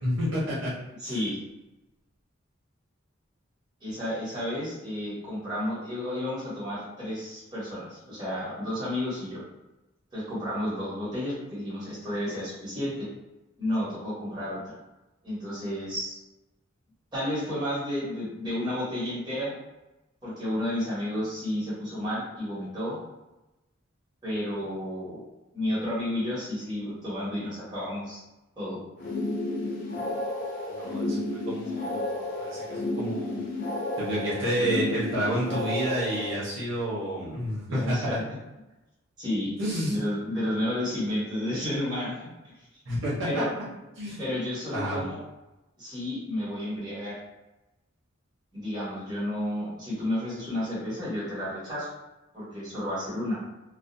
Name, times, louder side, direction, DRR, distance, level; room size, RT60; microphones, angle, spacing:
voice 1, 0.0-0.7 1.0-1.2 30.7-33.5 34.0-38.2 39.6-40.0 42.9-43.4 44.0-44.2 44.7-45.0, equal, 65° right, -7 dB, 0.8 m, -30 dB
voice 2, 1.0-1.4 3.8-9.4 10.1-13.1 13.6-14.7 15.2-16.2 17.1-19.5 20.2-23.0 24.2-25.2 25.5-28.2 28.6-28.8 37.7-38.2 39.2-39.6 39.9-42.5 43.2-43.5 44.2-45.2 45.8-47.2 48.5-51.9 52.3-53.4, left 1 dB, 20° right, -9 dB, 1.1 m, -31 dB
sound 1, 29.0-36.3, left 2 dB, 40° left, 0.4 m, -31 dB
2.5 x 2.0 x 2.6 m, 1.0 s
head